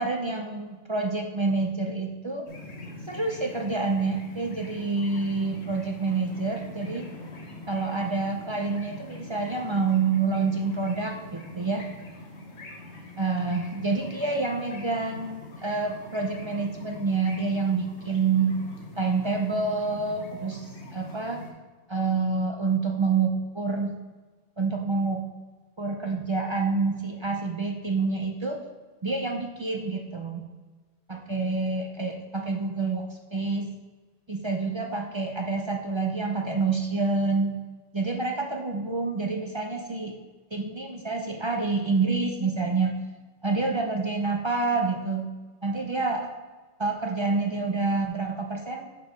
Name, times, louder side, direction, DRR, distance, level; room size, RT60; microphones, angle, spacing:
voice 1, 0.0-2.5 3.1-7.1 7.7-11.9 13.2-18.6 19.0-21.4 21.9-24.0 24.6-25.2 25.8-28.6 29.0-30.4 31.1-33.7 34.3-37.6 37.9-40.2 40.5-43.0 43.4-45.2 45.6-46.3 46.8-48.9, right 4 dB, 30° right, 2 dB, 0.6 m, -27 dB
sound 1, 2.5-21.5, left 1 dB, 75° left, 1.5 m, -43 dB
5.9 x 4.7 x 5.8 m, 1.3 s
omnidirectional pair, 1.1 m